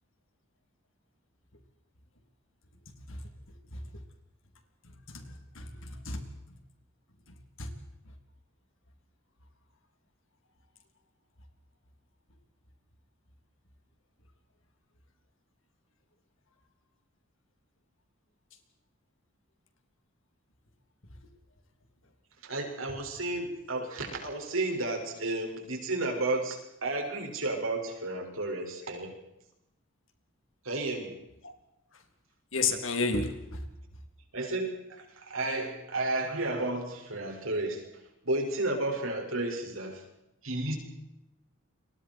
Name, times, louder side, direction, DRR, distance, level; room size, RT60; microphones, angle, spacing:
voice 1, 5.1-6.2 7.3-7.7 31.4-31.5 32.5-33.6, left 4 dB, 75° left, 6 dB, 3.4 m, -32 dB
voice 2, 22.4-29.1 30.6-31.1 34.3-37.9 38.2-40.0 40.4-40.8, right 2 dB, 80° right, 2 dB, 6.2 m, -32 dB
29.5 x 23.5 x 4.7 m, 0.89 s
head